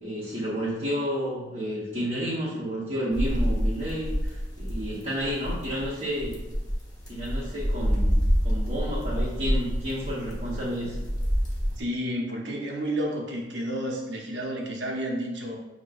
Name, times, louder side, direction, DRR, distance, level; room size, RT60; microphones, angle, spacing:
voice 1, 0.0-6.4 7.1-8.2 8.4-10.9, equal, 35° right, -13 dB, 1.0 m, -31 dB
sound 1, 3.1-11.8, equal, 20° left, 0.9 m, -27 dB
voice 2, 11.8-15.6, equal, 75° right, 0 dB, 0.7 m, -31 dB
6.3 x 2.2 x 2.5 m, 1.1 s
head